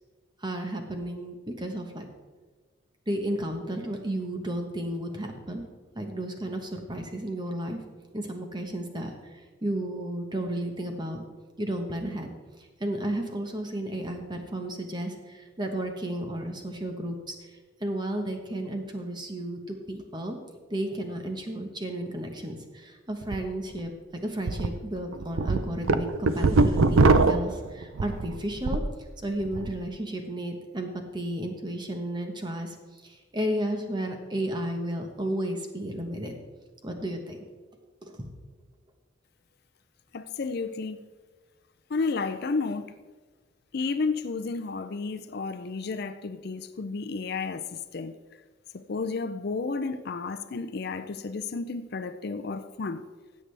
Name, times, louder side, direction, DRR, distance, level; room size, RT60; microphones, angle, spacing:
voice 1, 0.4-2.1 3.1-5.6 5.9-7.8 8.1-11.2 11.6-12.3 12.6-17.5 17.8-20.4 20.7-28.8 29.2-36.3 36.8-37.4 38.0-38.3, right 1 dB, 20° right, 4 dB, 1.1 m, -33 dB
sound 1, 23.2-23.4 23.8-23.9 24.5-24.7 25.1-28.9 29.3-29.7, right 3 dB, 85° right, 0.6 m, -22 dB
voice 2, 40.1-41.0 41.9-42.9 43.7-48.2 48.7-53.0, left 4 dB, 50° left, 10 dB, 0.4 m, -32 dB
16.5 x 7.5 x 3.4 m, 1.4 s
head